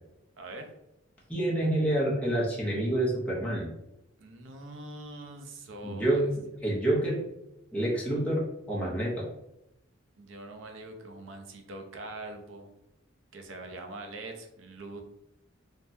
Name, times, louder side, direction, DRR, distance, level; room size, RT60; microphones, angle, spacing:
voice 1, 0.4-0.7 4.2-6.3 10.2-12.7 13.3-15.0, right 2 dB, 70° right, 4 dB, 0.5 m, -43 dB
voice 2, 1.3-3.7 5.8-7.2 7.7-9.3, right 1 dB, 5° left, -5 dB, 0.6 m, -28 dB
3.4 x 2.1 x 2.6 m, 0.85 s
head